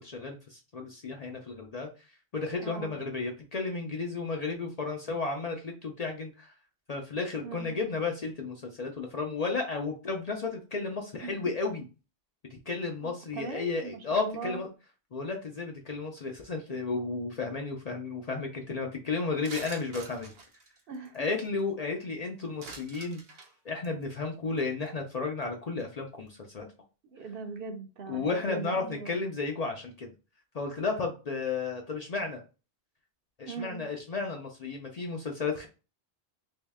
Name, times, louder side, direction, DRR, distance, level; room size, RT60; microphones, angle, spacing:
voice 1, 0.0-6.5 6.9-11.8 12.5-14.7 15.1-20.3 21.1-26.7 28.1-30.1 30.5-32.4 33.4-35.7, left 4 dB, 50° left, 2 dB, 0.5 m, -33 dB
voice 2, 2.6-3.0 7.4-7.8 11.2-11.4 13.0-14.6 20.9-21.3 27.0-29.2 33.4-33.8, right 5 dB, 65° right, 6 dB, 0.8 m, -40 dB
sound 1, 19.4-21.6 22.6-23.5 23.8-24.0 24.6-24.7 24.9-25.1 25.4-25.5, right 4 dB, 85° right, 1.1 m, -46 dB
3.1 x 2.7 x 3.4 m, 0.33 s
omnidirectional pair, 1.1 m